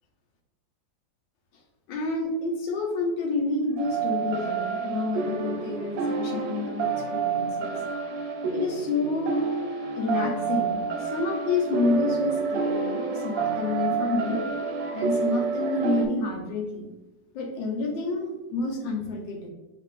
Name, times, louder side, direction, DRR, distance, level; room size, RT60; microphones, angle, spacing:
voice 1, 1.9-7.8 8.5-9.4 9.9-14.4 14.9-16.9 17.3-19.5, left 3 dB, 90° left, 3 dB, 1.5 m, -29 dB
sound 1, 3.8-16.1, right 5 dB, 85° right, 1.3 m, -29 dB
5.4 x 2.5 x 3.6 m, 1.0 s
omnidirectional pair, 1.9 m